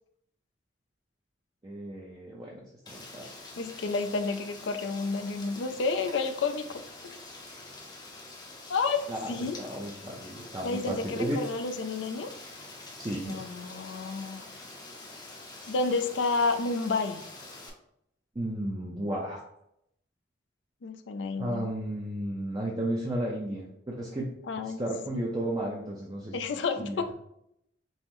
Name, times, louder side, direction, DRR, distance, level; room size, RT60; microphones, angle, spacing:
voice 1, 1.6-3.3 9.1-11.4 13.0-13.4 18.4-19.4 21.4-24.3 24.6-26.4 26.8-27.0, right 1 dB, 20° right, -2 dB, 0.5 m, -33 dB
Rain, 2.9-17.7, left 2 dB, 20° left, 0.6 m, -46 dB
voice 2, 3.6-7.1 8.7-9.6 10.6-12.3 13.3-14.5 15.7-17.2 20.8-21.6 24.5-24.9 25.1-25.3 26.3-27.1, left 4 dB, 70° left, 8 dB, 0.4 m, -30 dB
5.4 x 2.0 x 3.0 m, 0.77 s
head